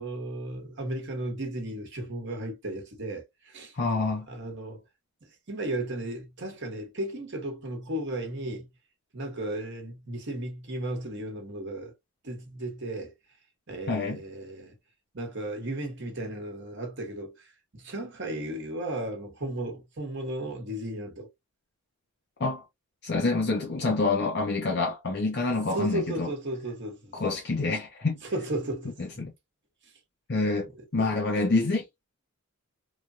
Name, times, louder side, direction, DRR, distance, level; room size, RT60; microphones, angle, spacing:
voice 1, 0.0-3.8 4.3-4.8 5.2-8.7 9.1-11.9 12.2-13.1 13.7-14.8 15.1-21.3 25.7-27.1 28.2-28.9 29.8-29.9 30.7-30.8, right 1 dB, 50° right, 1.1 m, -35 dB
voice 2, 3.7-4.3 13.9-14.2 22.4-22.6 23.0-26.3 27.1-28.2 29.2-29.3 30.3-32.0, left 3 dB, 50° left, 0.6 m, -27 dB
3.1 x 2.2 x 2.6 m
head